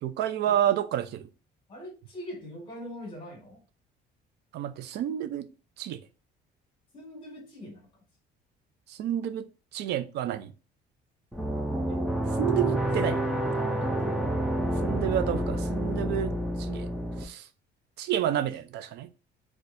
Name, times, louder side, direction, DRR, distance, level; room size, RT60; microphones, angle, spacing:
voice 1, 0.0-1.3 4.5-5.5 5.8-6.0 8.9-9.5 9.7-10.5 12.4-13.2 14.8-16.9 17.2-17.5 18.0-19.1, right 11 dB, 65° right, 0.4 m, -29 dB
voice 2, 1.7-3.6 6.9-7.9 11.9-12.0 12.5-14.3, equal, 25° left, 1.4 m, -43 dB
sound 1, 11.3-17.2, right 1 dB, 5° right, 0.4 m, -28 dB
4.1 x 2.3 x 2.5 m
cardioid pair, 140°, 19 cm